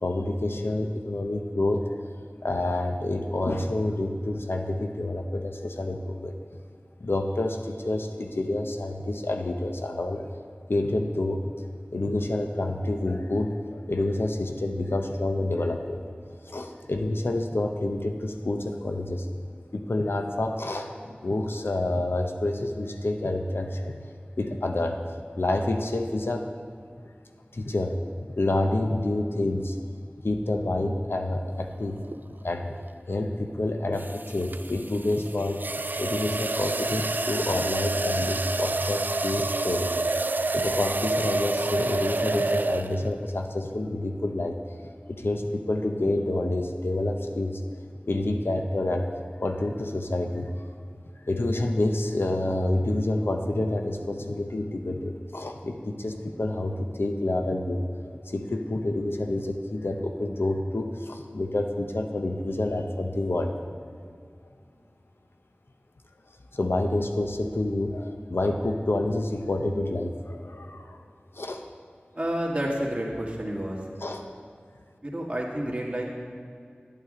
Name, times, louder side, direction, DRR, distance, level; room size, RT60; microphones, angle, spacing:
voice 1, 0.0-1.9 2.4-6.3 7.0-10.3 10.7-11.4 11.9-16.0 16.5-19.3 19.7-23.9 24.4-25.0 25.4-26.5 27.5-28.0 28.4-29.8 30.2-32.0 32.4-32.7 33.1-35.6 36.0-39.9 40.5-44.6 45.1-47.6 48.1-49.1 49.4-50.7 51.3-63.8 66.5-71.0 71.3-71.6 74.0-74.3, left 2 dB, 80° left, 4 dB, 0.7 m, -28 dB
sound 1, 32.0-32.3 34.0-43.2, right 2 dB, 55° right, 0.3 m, -29 dB
voice 2, 72.1-73.8 75.0-76.1, right 1 dB, 30° right, -3 dB, 1.8 m, -29 dB
11.0 x 8.6 x 3.8 m, 2.3 s
wide cardioid pair, 45°, 4 cm